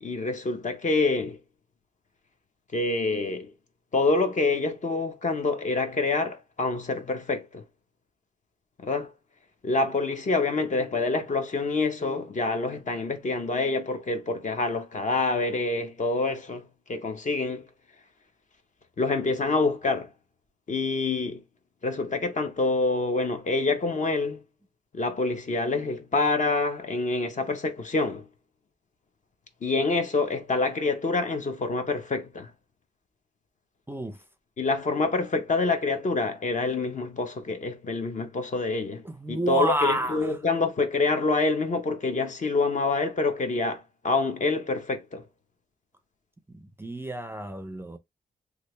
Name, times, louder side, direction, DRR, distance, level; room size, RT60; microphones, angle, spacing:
voice 1, 0.0-1.4 2.7-3.5 3.9-7.6 8.8-9.1 9.6-17.6 19.0-20.1 20.7-21.4 21.8-24.4 24.9-28.2 29.6-32.5 34.6-45.2, left 3 dB, 45° left, 0.8 m, -26 dB
voice 2, 33.9-34.2 39.0-40.4 46.5-48.0, right 1 dB, 15° right, 0.4 m, -30 dB
3.2 x 2.4 x 3.1 m
cardioid pair, 90°, 17 cm